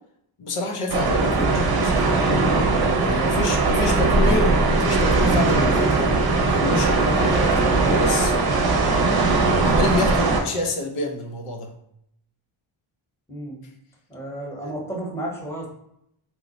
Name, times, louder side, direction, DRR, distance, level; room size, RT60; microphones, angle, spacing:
voice 1, 0.4-2.2 3.0-6.1 6.4-8.3 9.6-11.7 14.6-14.7, left 2 dB, 85° left, 3 dB, 0.7 m, -28 dB
sound 1, 0.9-10.4, right 3 dB, 50° right, 0.6 m, -20 dB
voice 2, 14.1-15.7, right 1 dB, 5° left, -2 dB, 0.9 m, -33 dB
3.0 x 2.1 x 3.8 m, 0.77 s
wide cardioid pair, 110°, 50 cm